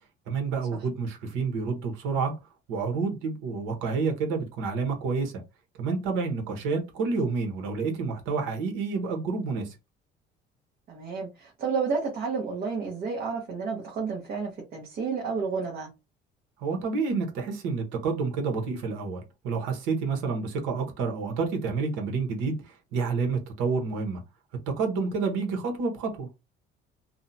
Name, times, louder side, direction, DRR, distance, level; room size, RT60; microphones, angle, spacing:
voice 1, 0.3-2.3 2.7-5.3 5.8-9.7 16.6-22.6 22.9-24.2 24.7-26.3, right 4 dB, 85° right, 1.0 m, -29 dB
voice 2, 10.9-15.9, right 5 dB, 50° right, 0.9 m, -31 dB
2.6 x 2.1 x 2.6 m
cardioid pair, 140°, 19 cm